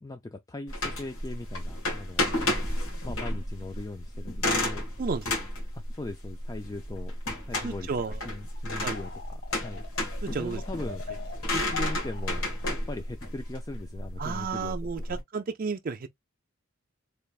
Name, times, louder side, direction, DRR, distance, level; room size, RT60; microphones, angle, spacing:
voice 1, 0.0-2.2 2.9-4.9 5.7-7.1 7.5-7.9 8.2-11.0 11.5-15.2, left 2 dB, 20° left, 0.4 m, -40 dB
sound 1, 0.7-15.2, left 1 dB, 85° left, 1.7 m, -32 dB
voice 2, 7.6-8.2 8.8-9.0 10.2-10.6 14.2-16.1, right 4 dB, 45° right, 0.5 m, -32 dB
sound 2, 7.8-8.2 8.4-12.7, left 5 dB, 50° left, 1.6 m, -44 dB
3.3 x 3.3 x 2.4 m
head